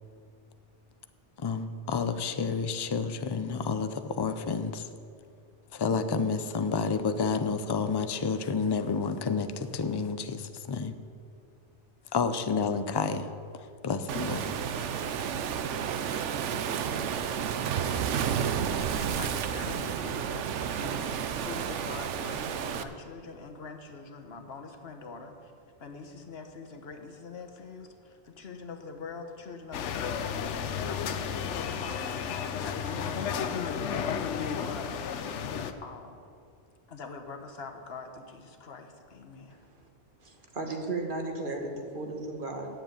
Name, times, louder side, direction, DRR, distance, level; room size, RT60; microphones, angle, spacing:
voice 1, 1.4-4.8 5.7-10.9 12.1-13.3 13.5-14.5, left 5 dB, 35° left, 10 dB, 0.4 m, -30 dB
Waves surf, 14.1-22.8, right 8 dB, 90° right, 1.0 m, -31 dB
voice 2, 18.4-25.5 25.8-36.2 36.9-39.6, left 4 dB, 60° left, 4 dB, 1.3 m, -44 dB
sound 1, 29.7-35.7, left 7 dB, 85° left, 1.0 m, -32 dB
voice 3, 40.2-42.7, right 2 dB, 50° right, 3 dB, 1.4 m, -35 dB
9.8 x 7.5 x 9.0 m, 2.4 s
omnidirectional pair, 1.2 m